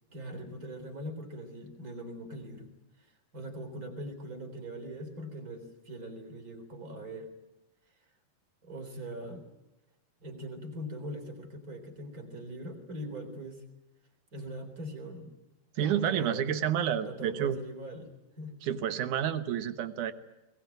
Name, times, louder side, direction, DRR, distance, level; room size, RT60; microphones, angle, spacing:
voice 1, 0.1-2.7 3.0-7.3 8.6-9.4 10.2-13.6 14.3-15.3 15.7-16.7 17.0-18.1 18.4-18.6, right 1 dB, 25° right, 4 dB, 3.9 m, -41 dB
voice 2, 15.8-17.6 18.6-20.1, right 9 dB, 65° right, 11 dB, 2.4 m, -29 dB
21.5 x 20.0 x 9.2 m, 0.98 s
omnidirectional pair, 4.1 m